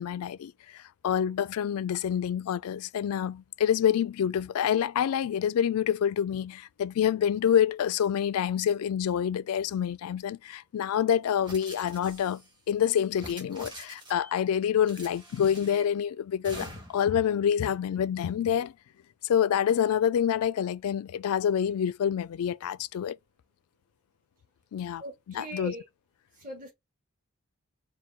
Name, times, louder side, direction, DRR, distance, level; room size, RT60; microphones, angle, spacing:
voice 1, 0.0-12.4 12.7-18.7 19.2-23.2 24.7-25.0 25.4-25.7, left 9 dB, 75° left, 0.3 m, -27 dB
sound 1, 11.4-12.5 13.1-14.3 14.8-15.9 16.4-17.1, right 1 dB, 20° right, 1.3 m, -45 dB
voice 2, 25.0-25.8 26.3-26.7, right 1 dB, 35° right, 1.8 m, -40 dB
4.4 x 2.2 x 3.5 m
head